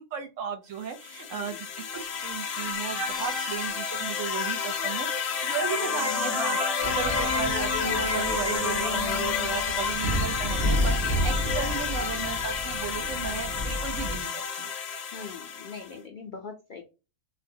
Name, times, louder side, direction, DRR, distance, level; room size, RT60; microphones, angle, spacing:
voice 1, 0.0-14.7, right 7 dB, 65° right, 5 dB, 1.0 m, -35 dB
sound 1, 0.8-15.9, left 6 dB, 55° left, 0.8 m, -31 dB
sound 2, 2.8-4.4 4.9-5.0 5.4-9.9, left 2 dB, 20° left, 1.0 m, -32 dB
sound 3, 6.8-14.2, equal, 90° right, 1.3 m, -31 dB
voice 2, 15.1-16.8, left 5 dB, 85° left, 4 dB, 0.4 m, -42 dB
4.2 x 2.1 x 2.6 m, 0.29 s
omnidirectional pair, 1.5 m